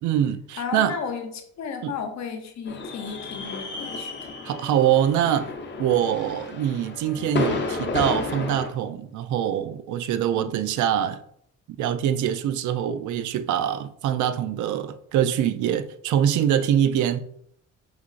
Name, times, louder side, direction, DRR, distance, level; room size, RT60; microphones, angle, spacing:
voice 1, 0.0-1.0 1.8-1.9 4.4-5.5 5.8-11.2 11.7-17.2, right 10 dB, 75° right, 0.5 m, -24 dB
voice 2, 0.6-4.1 10.3-10.5, left 6 dB, 65° left, 0.8 m, -34 dB
sound 1, 2.7-8.7, left 4 dB, 40° left, 0.8 m, -32 dB
4.9 x 3.7 x 2.4 m
cardioid pair, 90°, 30 cm